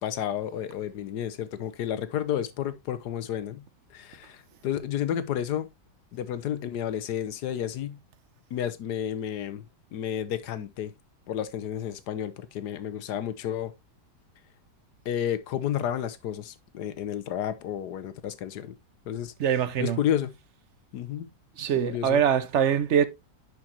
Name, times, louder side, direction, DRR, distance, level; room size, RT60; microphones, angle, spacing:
voice 1, 0.0-3.6 3.9-5.7 6.1-8.0 8.5-9.6 9.9-10.9 11.3-13.7 15.0-18.8 19.1-19.3 19.8-20.3 20.9-21.3 21.9-22.2, left 10 dB, 75° left, 1.4 m, -31 dB
voice 2, 19.4-20.0 21.6-23.0, right 8 dB, 60° right, 0.7 m, -23 dB
10.5 x 5.1 x 2.8 m
omnidirectional pair, 1.8 m